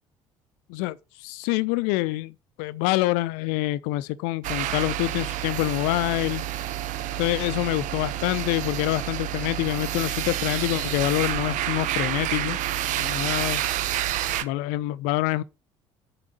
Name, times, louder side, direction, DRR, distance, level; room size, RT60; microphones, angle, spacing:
voice 1, 0.7-6.5 7.2-12.6 13.0-13.8 14.4-15.4, left 18 dB, 65° left, 0.6 m, -26 dB
sound 1, 4.4-14.4, right 12 dB, 55° right, 0.7 m, -29 dB
7.0 x 4.9 x 6.5 m
figure-of-eight pair, 55°, 16 cm